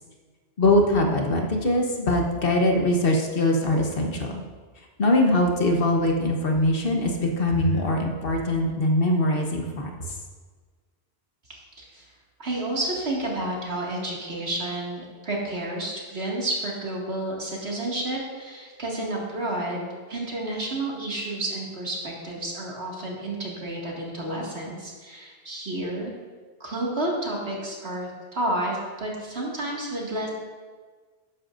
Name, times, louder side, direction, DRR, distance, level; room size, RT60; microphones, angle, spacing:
voice 1, 0.6-4.4 5.0-9.9, left 1 dB, 60° left, 2 dB, 1.3 m, -22 dB
voice 2, 11.5-12.0 12.4-26.1 26.6-30.3, right 1 dB, 70° right, -3 dB, 2.4 m, -30 dB
12.5 x 10.0 x 2.6 m, 1.5 s
omnidirectional pair, 1.1 m